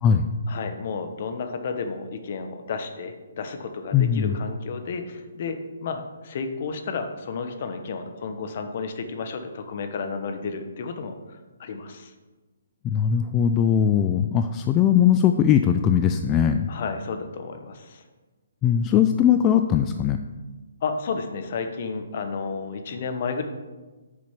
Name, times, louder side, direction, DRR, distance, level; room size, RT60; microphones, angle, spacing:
voice 1, 0.5-11.1 11.6-12.1 16.7-18.0 20.8-23.4, left 5 dB, 50° left, 7 dB, 0.9 m, -32 dB
voice 2, 3.9-4.3 12.8-16.7 18.6-20.2, left 9 dB, 20° left, 7 dB, 0.3 m, -20 dB
6.5 x 5.1 x 5.8 m, 1.2 s
figure-of-eight pair, 140°, 0 cm